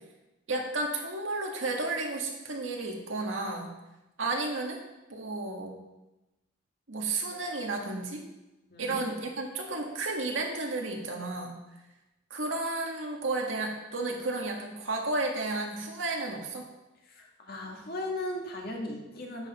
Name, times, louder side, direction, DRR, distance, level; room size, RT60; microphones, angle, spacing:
voice 1, 0.5-3.7 4.2-4.8 5.1-5.8 6.9-8.3 8.8-11.6 12.3-16.7, right 2 dB, 85° right, 1 dB, 1.8 m, -32 dB
voice 2, 8.7-9.0 17.1-19.5, left 1 dB, 50° left, 0 dB, 1.9 m, -37 dB
10.5 x 7.5 x 4.3 m, 0.99 s
head